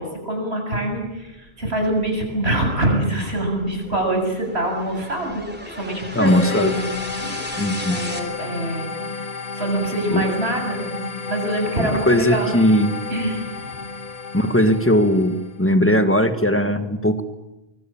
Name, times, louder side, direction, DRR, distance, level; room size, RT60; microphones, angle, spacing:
voice 1, 0.0-7.5 7.9-8.9 9.5-11.0 11.3-12.5 13.1-13.8, right 1 dB, 90° right, 3 dB, 7.4 m, -25 dB
sound 1, 1.2-8.2, equal, 10° right, 3.6 m, -37 dB
voice 2, 6.1-6.7 7.6-8.0 10.1-10.2 12.1-12.9 14.3-17.2, equal, 10° left, 9 dB, 1.7 m, -18 dB
sound 2, 6.3-15.6, left 4 dB, 45° left, 1.4 m, -32 dB
25.0 x 23.5 x 8.8 m, 0.97 s
omnidirectional pair, 1.0 m